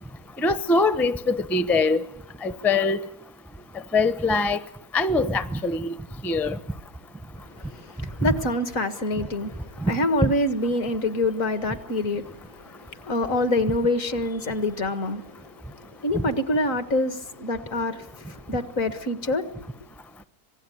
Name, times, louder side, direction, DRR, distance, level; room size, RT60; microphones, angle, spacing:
voice 1, 0.4-2.0 2.4-3.1 3.9-4.6 4.9-6.0 6.2-6.6 8.2-8.3 9.8-9.9 10.2-10.3, left 3 dB, ahead, 0.6 m, -22 dB
voice 2, 7.5-15.5 16.0-19.7, left 1 dB, 60° left, 2.1 m, -26 dB
25.5 x 19.0 x 10.0 m
omnidirectional pair, 1.6 m